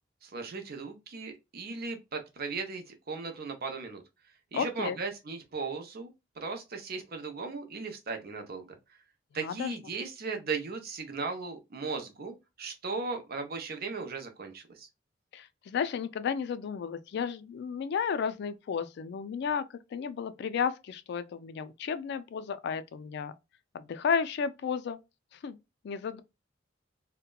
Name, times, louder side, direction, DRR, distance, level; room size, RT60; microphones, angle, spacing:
voice 1, 0.2-4.0 4.5-6.1 6.4-8.7 9.3-14.9, right 4 dB, 50° right, 0.6 m, -37 dB
voice 2, 4.5-5.0 9.3-9.7 15.3-19.6 19.9-23.3 23.7-25.0 25.3-25.6 25.8-26.2, left 6 dB, 60° left, 0.3 m, -33 dB
2.8 x 2.1 x 2.2 m
head